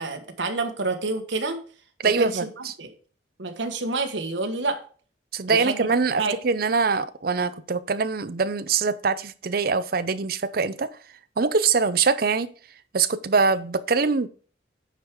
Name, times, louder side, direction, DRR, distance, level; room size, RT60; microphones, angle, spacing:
voice 1, 0.0-1.6 2.0-2.9 3.4-4.8 5.5-5.9 6.2-6.4, right 3 dB, 75° right, 1.4 m, -28 dB
voice 2, 2.0-2.7 5.3-10.9 11.4-12.5 12.9-14.3, right 4 dB, 55° right, 0.6 m, -23 dB
9.0 x 4.8 x 5.0 m
head